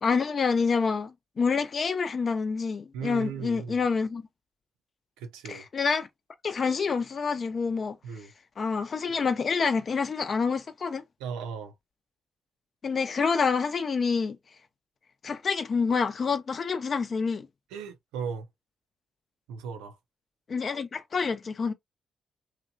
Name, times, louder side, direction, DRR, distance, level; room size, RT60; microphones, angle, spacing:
voice 1, 0.0-4.2 5.5-6.1 6.4-8.0 8.6-11.0 12.8-14.4 15.2-17.5 20.5-21.7, left 5 dB, 50° left, 0.6 m, -27 dB
voice 2, 2.9-3.8 5.2-5.7 8.0-8.3 11.2-11.7 17.7-18.5 19.5-20.0, right 6 dB, 85° right, 0.4 m, -36 dB
2.9 x 2.2 x 2.6 m
hypercardioid pair, 45°, 0 cm